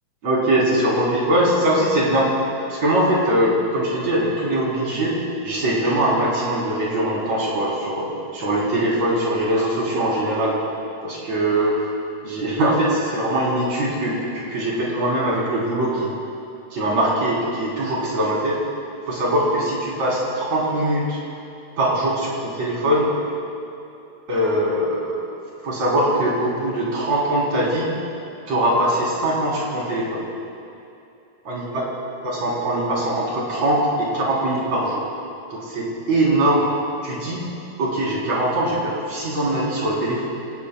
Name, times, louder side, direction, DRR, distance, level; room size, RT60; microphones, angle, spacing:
voice 1, 0.2-2.3 2.7-5.1 5.4-8.1 8.3-10.5 11.0-11.8 12.2-16.1 16.7-18.6 19.1-21.2 21.8-23.1 24.3-25.2 25.6-27.9 28.5-30.3 31.4-31.8 32.2-35.1 35.5-36.7 37.0-37.4 37.8-40.3, right 1 dB, 50° right, -6 dB, 5.1 m, -21 dB
27.0 x 19.0 x 2.4 m, 2.6 s
omnidirectional pair, 4.3 m